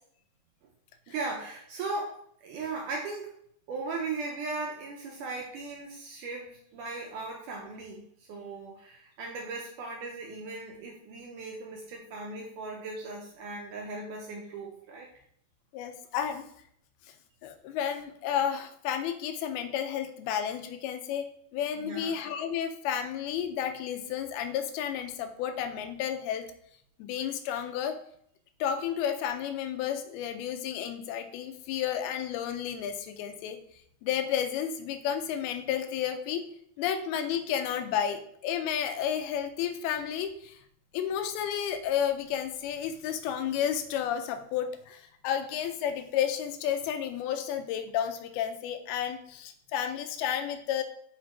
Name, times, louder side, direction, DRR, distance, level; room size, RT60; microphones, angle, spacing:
voice 1, 1.1-3.3 3.7-15.1 21.8-22.1, right 3 dB, 80° right, 0 dB, 1.9 m, -38 dB
voice 2, 15.7-16.4 17.4-26.5 27.0-28.0 28.6-33.6 34.0-36.4 36.8-40.6 40.9-50.8, left 9 dB, 85° left, 7 dB, 2.6 m, -32 dB
6.6 x 4.4 x 4.5 m, 0.68 s
omnidirectional pair, 4.4 m